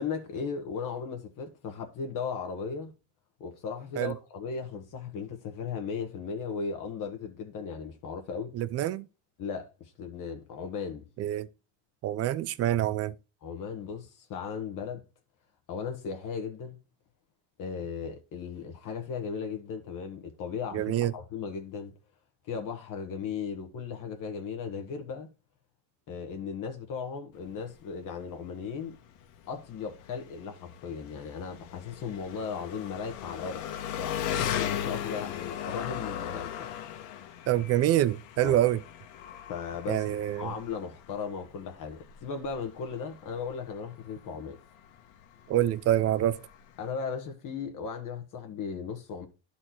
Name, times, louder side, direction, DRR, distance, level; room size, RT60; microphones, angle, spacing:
voice 1, 0.0-2.9 3.4-8.5 9.4-11.1 13.4-15.0 15.7-16.8 17.6-21.9 22.5-25.3 26.1-29.0 29.5-33.6 34.0-36.8 37.1-37.4 38.4-38.6 39.5-40.1 40.4-44.6 46.8-49.3, left 6 dB, 45° left, 1.3 m, -36 dB
voice 2, 8.5-9.1 11.2-11.5 12.0-13.1 20.7-21.1 37.5-38.8 39.9-40.5 45.5-46.4, right 13 dB, 35° right, 0.4 m, -26 dB
Engine, 27.3-46.9, left 10 dB, 85° left, 1.5 m, -38 dB
11.0 x 4.4 x 4.4 m
cardioid pair, 145°, 47 cm